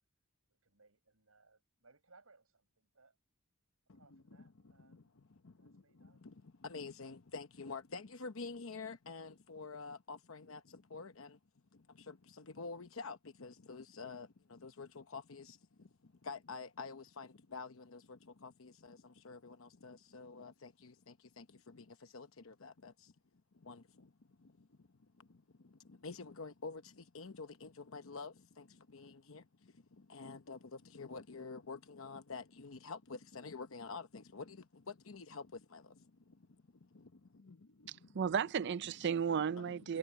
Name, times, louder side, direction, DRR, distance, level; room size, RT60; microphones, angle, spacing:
voice 1, 0.5-3.2 3.9-5.2 5.6-6.2, right 3 dB, 80° right, 6.8 m, -67 dB
voice 2, 6.6-10.6 10.9-11.3 12.1-12.2 12.6-15.6 16.2-18.0 18.4-19.0 19.2-20.9 21.4-21.5 22.1-22.9 23.7-23.8 26.0-26.8 27.1-28.6 28.9-29.4 30.1-30.6 30.9-34.6 35.1-35.4 35.7-35.8 37.5-37.6 38.6-38.7 39.4-39.7, left 4 dB, 70° left, 0.9 m, -47 dB
voice 3, 37.9-40.0, right 7 dB, 55° right, 0.5 m, -34 dB
head